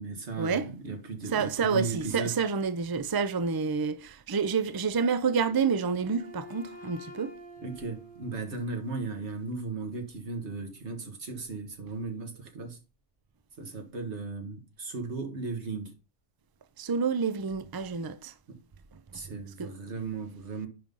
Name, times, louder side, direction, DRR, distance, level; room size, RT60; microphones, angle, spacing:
voice 1, 0.0-2.4 7.6-12.8 13.6-15.9 18.5-18.6 19.1-20.7, right 3 dB, 65° right, 2.0 m, -36 dB
voice 2, 1.3-7.3 16.8-18.3 19.6-19.7, right 5 dB, 30° right, 0.4 m, -28 dB
Wind instrument woodwind instrument, 5.3-9.2, right 1 dB, 10° left, 0.8 m, -48 dB
10.0 x 3.8 x 5.4 m
omnidirectional pair, 1.3 m